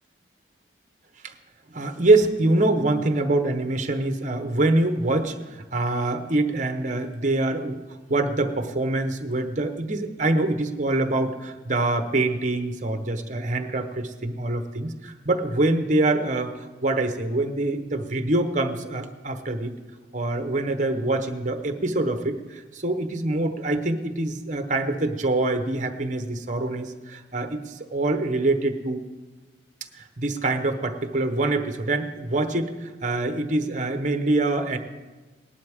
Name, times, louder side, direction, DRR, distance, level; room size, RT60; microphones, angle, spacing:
voice 1, 1.7-7.8 8.1-19.8 20.1-29.0 30.0-34.8, right 2 dB, 40° right, 7 dB, 1.0 m, -25 dB
19.0 x 11.5 x 3.6 m, 1.2 s
head